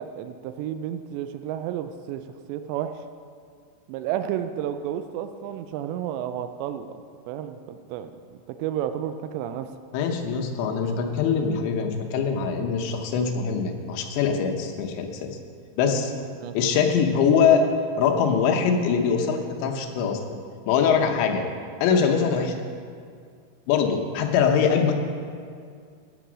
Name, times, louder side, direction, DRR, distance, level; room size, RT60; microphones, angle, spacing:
voice 1, 0.0-2.2 2.5-2.9 3.9-7.0 7.3-8.1 8.5-9.7 16.4-16.6 22.3-22.5, right 10 dB, 85° right, 9 dB, 2.7 m, -31 dB
voice 2, 9.9-15.4 15.8-16.1 16.5-17.7 18.0-20.4 20.7-21.4 21.8-22.5 23.7-24.9, left 6 dB, 80° left, 4 dB, 3.2 m, -23 dB
15.5 x 6.2 x 6.2 m, 2.2 s
omnidirectional pair, 5.1 m